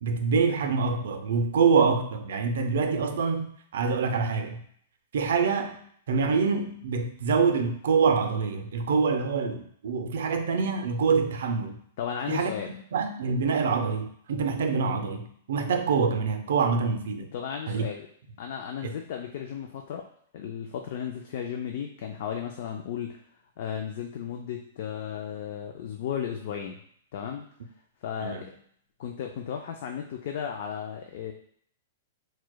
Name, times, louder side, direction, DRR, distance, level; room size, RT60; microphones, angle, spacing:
voice 1, 0.0-4.6 5.1-5.8 6.1-11.8 12.3-17.3 17.7-17.9 18.8-18.9 28.2-28.4, right 5 dB, 70° right, 6 dB, 0.4 m, -26 dB
voice 2, 12.0-12.7 17.3-18.1 18.4-20.1 20.3-23.2 23.6-26.8 27.1-27.4 28.0-28.5 29.0-31.3, left 8 dB, 50° left, 3 dB, 0.3 m, -34 dB
4.6 x 2.1 x 2.2 m, 0.64 s
hypercardioid pair, 165°, 0 cm